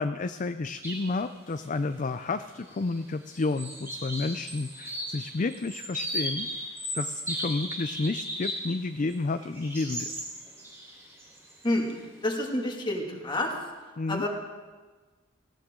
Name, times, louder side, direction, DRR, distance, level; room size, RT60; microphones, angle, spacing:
voice 1, 0.0-6.5 6.9-10.1 14.0-14.2, left 3 dB, 40° left, 10 dB, 0.5 m, -31 dB
sound 1, 0.8-1.1 1.5-1.6 2.6-3.0 3.2-8.7 9.1-11.8, equal, 15° right, 4.0 m, -36 dB
voice 2, 11.6-13.6 14.1-14.3, left 1 dB, 25° left, 0 dB, 2.3 m, -29 dB
19.0 x 16.5 x 3.8 m, 1.3 s
head